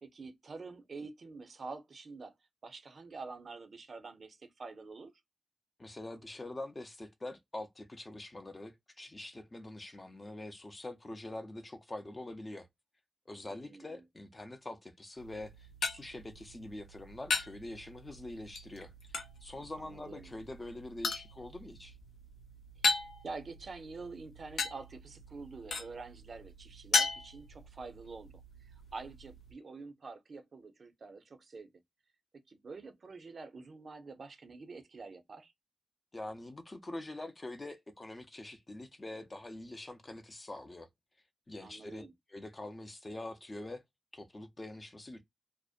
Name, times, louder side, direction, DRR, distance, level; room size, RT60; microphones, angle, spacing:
voice 1, 0.0-2.3 2.6-5.1 13.5-14.0 19.8-20.3 22.8-28.3 28.6-31.7 32.5-35.5 41.6-42.1, right 4 dB, 55° right, 0.6 m, -47 dB
voice 2, 5.8-12.7 13.3-18.9 19.4-22.0 36.1-40.9 41.5-43.8 44.1-45.2, left 2 dB, 25° left, 0.5 m, -45 dB
sound 1, 15.2-29.5, left 4 dB, 85° left, 0.7 m, -38 dB
2.5 x 2.1 x 2.3 m
cardioid pair, 90°, 0 cm